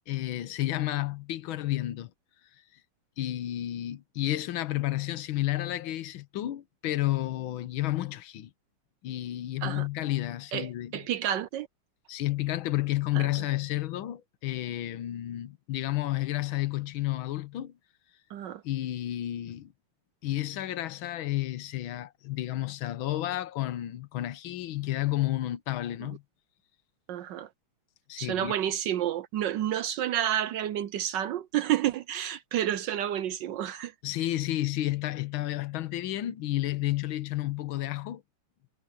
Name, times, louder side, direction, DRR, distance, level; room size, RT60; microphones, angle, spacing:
voice 1, 0.0-2.1 3.2-8.5 9.0-11.0 12.1-17.7 18.6-19.7 20.2-26.2 28.1-28.5 34.0-38.2, left 15 dB, 75° left, 1.7 m, -31 dB
voice 2, 10.5-11.7 13.1-13.3 18.3-18.6 26.0-26.1 27.1-27.5 28.2-33.9, right 11 dB, 70° right, 1.2 m, -30 dB
omnidirectional pair, 2.3 m